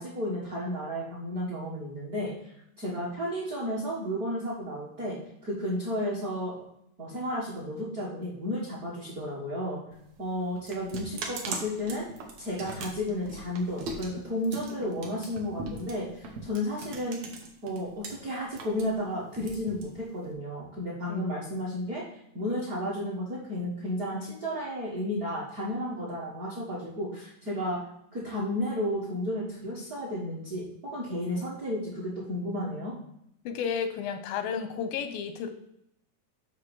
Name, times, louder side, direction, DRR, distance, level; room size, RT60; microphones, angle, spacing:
voice 1, 0.0-6.5 7.0-9.8 10.2-12.1 12.4-17.2 17.6-22.0 22.3-27.8 28.1-33.0, left 1 dB, 45° right, -5 dB, 1.3 m, -33 dB
sound 1, 9.9-18.1 18.4-20.3, right 3 dB, 60° right, 1.9 m, -40 dB
voice 2, 33.5-35.5, left 7 dB, 90° left, 8 dB, 2.6 m, -32 dB
9.5 x 3.2 x 6.3 m, 0.74 s
omnidirectional pair, 4.0 m